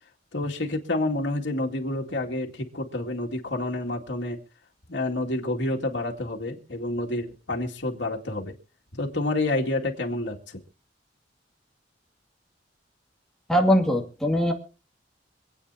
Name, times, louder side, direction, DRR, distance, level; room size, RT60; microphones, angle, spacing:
voice 1, 0.3-4.4 4.9-8.5 8.9-10.6, left 2 dB, 85° left, -1 dB, 2.3 m, -29 dB
voice 2, 13.5-14.5, equal, 5° left, 1 dB, 2.3 m, -21 dB
26.5 x 8.9 x 2.8 m, 0.34 s
head